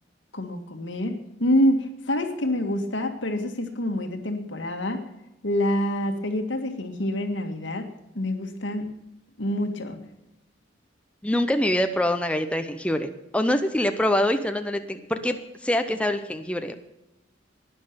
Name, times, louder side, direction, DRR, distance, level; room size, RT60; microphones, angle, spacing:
voice 1, 0.3-5.0 5.4-7.9 8.2-8.9 9.4-10.0, left 1 dB, 80° left, 5 dB, 1.9 m, -26 dB
voice 2, 11.2-16.7, left 1 dB, 5° left, 7 dB, 0.7 m, -25 dB
12.0 x 10.0 x 6.9 m, 0.91 s
head